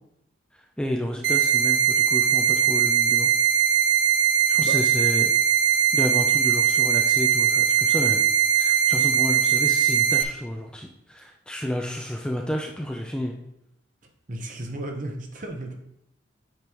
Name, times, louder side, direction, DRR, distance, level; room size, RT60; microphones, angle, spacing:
voice 1, 0.8-3.3 4.5-5.3 5.7-8.2 8.5-13.4, equal, 5° left, 1 dB, 0.5 m, -31 dB
sound 1, 1.2-10.2, right 8 dB, 80° right, 0.5 m, -20 dB
voice 2, 14.3-15.7, right 1 dB, 45° right, 3 dB, 0.9 m, -34 dB
8.3 x 5.2 x 3.0 m, 0.79 s
head